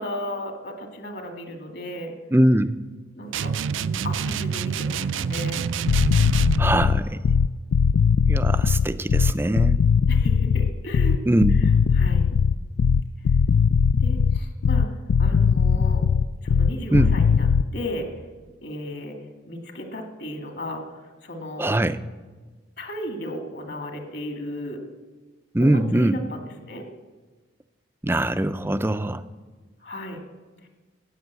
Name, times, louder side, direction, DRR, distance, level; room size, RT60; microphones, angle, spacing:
voice 1, 0.0-2.1 3.1-5.7 10.1-11.2 11.9-12.3 14.0-16.0 16.4-18.1 18.6-19.2 19.5-21.7 22.8-24.8 25.6-26.9 29.8-30.2 30.6-30.7, equal, 60° left, 4 dB, 2.2 m, -35 dB
voice 2, 2.3-2.8 6.6-7.2 8.3-9.8 11.3-11.6 16.9-17.1 21.6-22.0 25.5-26.2 28.0-29.2, right 1 dB, 10° right, 12 dB, 0.4 m, -21 dB
sound 1, 3.3-6.7, right 6 dB, 80° right, 0.4 m, -27 dB
sound 2, 5.7-17.7, left 6 dB, 85° left, 0.4 m, -19 dB
14.5 x 8.9 x 8.3 m, 1.3 s
head